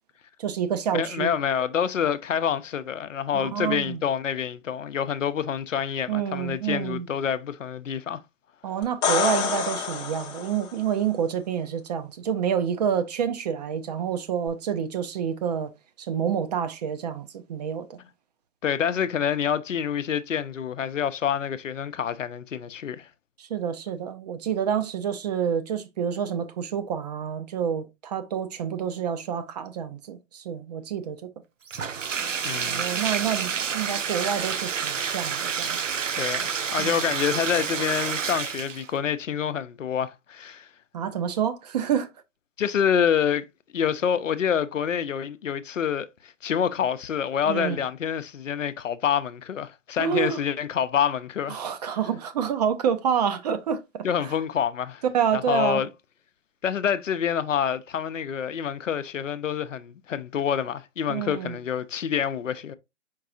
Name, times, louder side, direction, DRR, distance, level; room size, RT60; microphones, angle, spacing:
voice 1, 0.4-1.3 3.3-4.0 6.1-7.1 8.6-15.7 16.0-18.0 23.4-31.3 32.6-35.8 36.8-37.0 40.9-42.1 47.5-47.8 50.0-50.4 51.5-54.3 55.1-55.8 61.1-61.6, right 8 dB, 35° right, 0.5 m, -28 dB
voice 2, 0.9-8.2 18.6-23.1 32.4-32.8 36.1-40.7 42.6-43.5 43.7-51.6 54.0-55.0 55.3-55.9 56.6-62.7, left 8 dB, 85° left, 0.6 m, -27 dB
sound 1, 8.8-10.8 14.5-14.6, left 6 dB, 10° left, 0.5 m, -27 dB
Bathtub (filling or washing), 31.7-38.9, right 7 dB, 90° right, 0.6 m, -29 dB
4.6 x 4.6 x 2.5 m
figure-of-eight pair, 130°, 37 cm